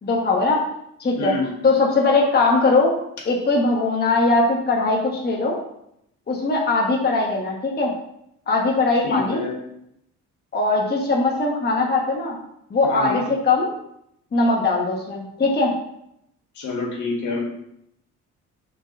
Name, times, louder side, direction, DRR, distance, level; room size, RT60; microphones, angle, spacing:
voice 1, 0.0-0.6 1.0-1.3 1.6-2.9 3.3-5.5 6.3-7.9 8.5-9.4 10.5-12.4 12.7-13.7 14.3-15.7, left 3 dB, 35° left, -2 dB, 1.2 m, -20 dB
voice 2, 1.2-1.5 8.9-9.6 12.8-13.2 16.5-17.4, left 3 dB, 70° left, -2 dB, 2.0 m, -27 dB
4.5 x 4.0 x 5.3 m, 0.76 s
cardioid pair, 90°, 30 cm